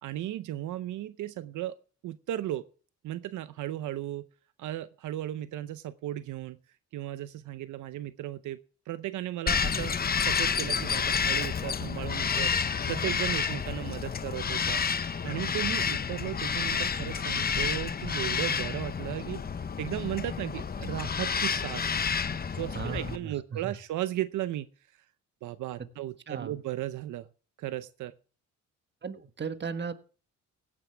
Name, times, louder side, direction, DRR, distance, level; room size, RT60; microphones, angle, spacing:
voice 1, 0.0-1.8 2.0-2.7 3.0-4.2 4.6-6.6 6.9-8.6 8.9-12.5 12.9-14.8 15.2-22.0 22.5-24.7 25.4-27.3 27.6-28.1, right 13 dB, 80° right, 13 dB, 0.8 m, -35 dB
Bird vocalization bird call bird song, 9.5-23.2, left 6 dB, 30° left, 0.8 m, -30 dB
voice 2, 22.7-23.7 26.3-26.6 29.0-29.9, right 6 dB, 35° right, 9 dB, 1.5 m, -36 dB
17.0 x 9.9 x 3.4 m, 0.40 s
cardioid pair, 90°, 30 cm